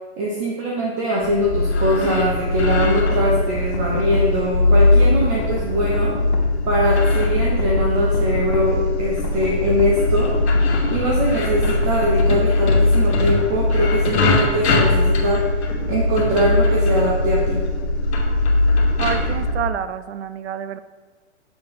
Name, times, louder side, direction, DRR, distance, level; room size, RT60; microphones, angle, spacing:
voice 1, 0.2-6.2 6.7-10.3 10.9-15.4 15.9-17.6, equal, 15° right, -2 dB, 0.3 m, -22 dB
sound 1, 1.2-19.6, left 2 dB, 75° left, 1.1 m, -20 dB
sound 2, 2.6-4.3 4.8-6.5 7.0-8.7 9.2-10.9 11.6-13.3, left 6 dB, 40° left, 0.9 m, -34 dB
voice 2, 19.0-20.8, right 10 dB, 80° right, 13 dB, 0.5 m, -27 dB
6.3 x 3.4 x 4.7 m, 1.4 s
hypercardioid pair, 140°, 34 cm